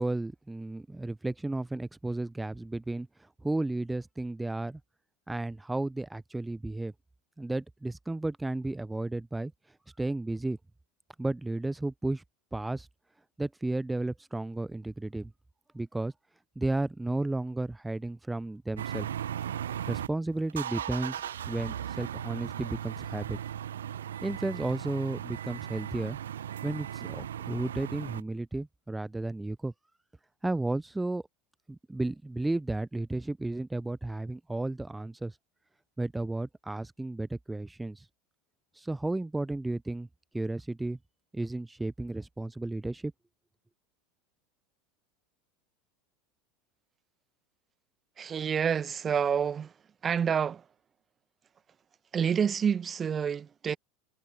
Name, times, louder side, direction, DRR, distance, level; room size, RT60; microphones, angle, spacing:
voice 1, 0.0-4.8 5.3-6.9 7.4-9.5 10.0-10.6 11.2-12.2 12.5-12.9 13.4-15.3 15.7-16.1 16.6-19.1 19.9-23.4 24.2-26.2 26.6-29.7 30.4-31.2 31.7-35.4 36.0-38.1 38.8-40.1 40.3-41.0 41.3-43.1, right 2 dB, 10° right, 0.9 m, -33 dB
sound 1, 18.8-20.1 20.5-28.2, right 10 dB, 70° right, 1.3 m, -37 dB
voice 2, 48.2-49.7 50.0-50.6 52.1-53.8, right 7 dB, 25° right, 1.4 m, -28 dB
figure-of-eight pair, 75°, 0 cm